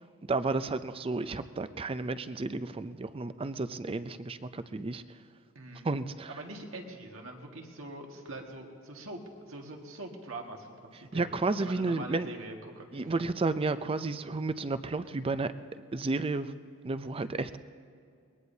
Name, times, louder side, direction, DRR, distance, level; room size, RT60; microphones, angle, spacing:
voice 1, 0.3-5.0 5.8-6.3 11.1-12.3 12.9-15.5 15.9-16.5 16.8-17.6, right 3 dB, 25° right, 12 dB, 0.4 m, -32 dB
voice 2, 5.6-5.9 6.3-10.7 10.9-11.3 11.6-12.9, right 2 dB, 80° right, 1 dB, 1.8 m, -43 dB
22.5 x 20.5 x 2.8 m, 2.4 s
head